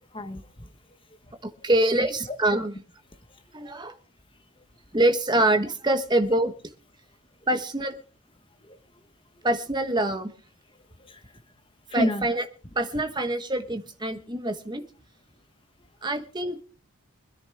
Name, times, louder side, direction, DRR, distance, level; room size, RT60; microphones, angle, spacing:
voice 1, 0.1-0.7 1.1-1.4 3.3-3.4 4.6-4.7 8.6-8.8 9.3-9.5 10.7-11.4 11.9-12.3, equal, 25° left, 8 dB, 1.2 m, -32 dB
voice 2, 1.6-2.7 3.5-3.9 4.9-6.5 7.5-7.9 9.4-10.3 11.9-12.4 12.7-14.9 16.0-16.6, right 1 dB, 20° right, 7 dB, 1.3 m, -25 dB
25.0 x 10.0 x 3.5 m, 0.39 s
head